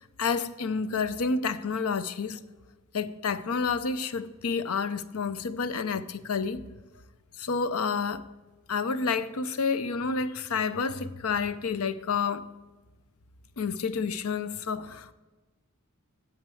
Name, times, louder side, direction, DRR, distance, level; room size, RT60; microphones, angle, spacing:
voice 1, 0.0-2.4 2.9-6.6 7.4-8.3 8.7-12.5 13.6-15.1, left 5 dB, 80° left, 0.6 m, -29 dB
8.9 x 7.9 x 7.6 m
head